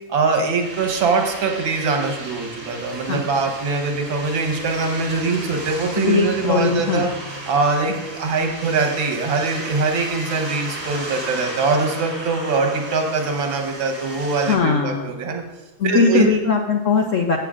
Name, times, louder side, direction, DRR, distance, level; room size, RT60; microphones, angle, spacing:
voice 1, 0.1-7.1 7.5-7.9 8.2-15.4 15.8-16.4, right 4 dB, 85° right, 3 dB, 2.0 m, -22 dB
sound 1, 0.6-14.6, right 2 dB, 50° right, 2.3 m, -34 dB
voice 2, 6.0-7.1 14.5-15.1 15.8-17.4, left 5 dB, 75° left, 3 dB, 0.7 m, -19 dB
14.5 x 7.7 x 2.5 m, 1.0 s
omnidirectional pair, 2.1 m